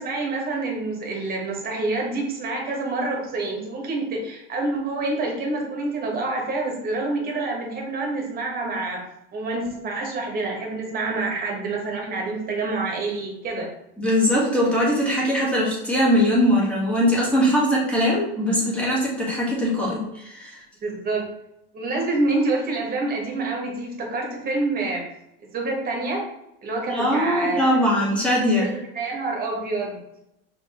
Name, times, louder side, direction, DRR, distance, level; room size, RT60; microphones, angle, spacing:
voice 1, 0.0-9.0 9.3-13.7 20.8-21.3 21.7-25.0 25.5-26.2 26.6-27.6 28.6-30.0, right 2 dB, 30° right, 0 dB, 1.3 m, -27 dB
voice 2, 14.0-20.6 26.9-28.7, equal, 5° left, -5 dB, 1.4 m, -21 dB
4.9 x 3.0 x 2.9 m, 0.83 s
supercardioid pair, 125°, 29 cm